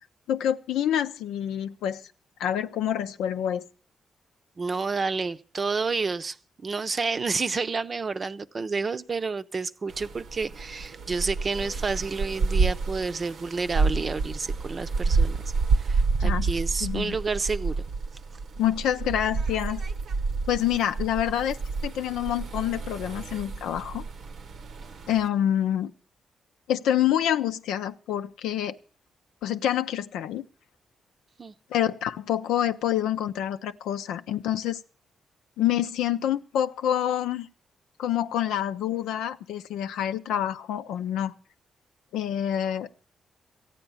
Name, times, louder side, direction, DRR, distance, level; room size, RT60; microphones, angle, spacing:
voice 1, 0.3-2.0 2.4-3.6 16.2-16.5 16.8-17.2 18.6-19.8 20.5-21.6 21.8-24.1 25.1-25.9 26.7-28.8 29.4-30.4 31.7-34.8 35.6-37.5 38.0-41.3 42.1-43.0, left 10 dB, 85° left, 0.6 m, -27 dB
voice 2, 4.6-6.4 6.6-15.4 15.8-17.8 31.4-31.5, right 4 dB, 45° right, 0.6 m, -30 dB
sound 1, 9.9-25.3, right 4 dB, 70° right, 0.9 m, -29 dB
14.5 x 9.1 x 7.0 m
supercardioid pair, 55°, 0 cm